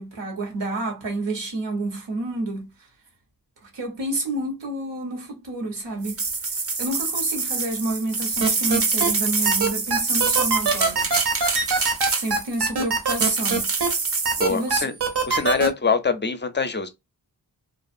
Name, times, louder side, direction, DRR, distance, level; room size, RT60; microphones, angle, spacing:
voice 1, 0.0-2.7 3.6-6.2 6.8-11.1 12.1-13.7 14.5-14.9, right 2 dB, 90° right, 1.1 m, -29 dB
sound 1, 6.0-12.6 13.1-14.6, right 4 dB, 35° right, 0.6 m, -26 dB
sound 2, 8.4-9.1 9.5-13.9 14.3-15.7, right 4 dB, 65° right, 0.9 m, -22 dB
voice 2, 14.4-14.9 15.3-16.9, left 5 dB, 25° left, 0.5 m, -24 dB
2.4 x 2.4 x 2.5 m
cardioid pair, 50°, 42 cm